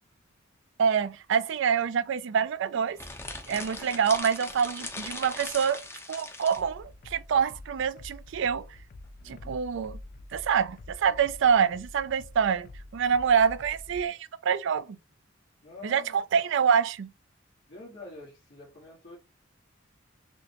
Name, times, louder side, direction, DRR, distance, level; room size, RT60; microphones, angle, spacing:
voice 1, 0.8-3.0 3.5-8.7 9.3-10.0 10.3-14.9 15.8-17.1, right 7 dB, 65° right, 0.3 m, -26 dB
sound 1, 2.9-6.6, left 2 dB, 10° left, 0.7 m, -39 dB
sound 2, 6.6-14.1, left 2 dB, 45° left, 0.4 m, -47 dB
voice 2, 9.2-9.6 15.6-16.2 17.7-19.2, left 2 dB, 65° left, 1.4 m, -47 dB
6.2 x 2.1 x 2.8 m
head